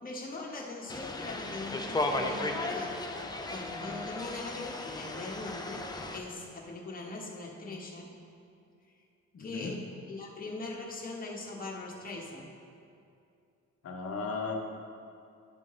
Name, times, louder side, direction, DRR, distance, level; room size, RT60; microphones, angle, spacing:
voice 1, 0.0-5.9 6.1-8.1 9.4-12.5, left 2 dB, 30° left, -2 dB, 1.3 m, -41 dB
sound 1, 0.9-6.2, left 2 dB, 15° left, 0.5 m, -35 dB
voice 2, 9.3-9.8 13.8-14.5, left 4 dB, 50° left, 2 dB, 0.9 m, -36 dB
11.0 x 3.8 x 3.7 m, 2.5 s
cardioid pair, 90°, 30 cm